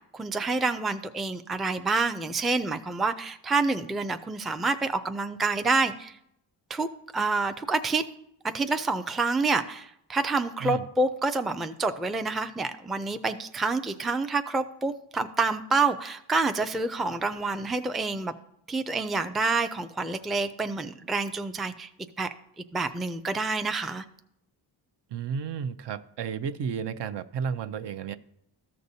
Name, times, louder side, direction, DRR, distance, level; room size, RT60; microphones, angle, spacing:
voice 1, 0.1-6.2 6.7-6.9 7.1-8.0 8.4-18.3 18.7-21.9 22.2-22.3 22.6-24.0, right 3 dB, ahead, 8 dB, 0.3 m, -28 dB
voice 2, 25.1-28.1, right 6 dB, 65° right, 11 dB, 0.6 m, -32 dB
13.5 x 6.6 x 2.7 m, 0.75 s
cardioid pair, 80°, 45 cm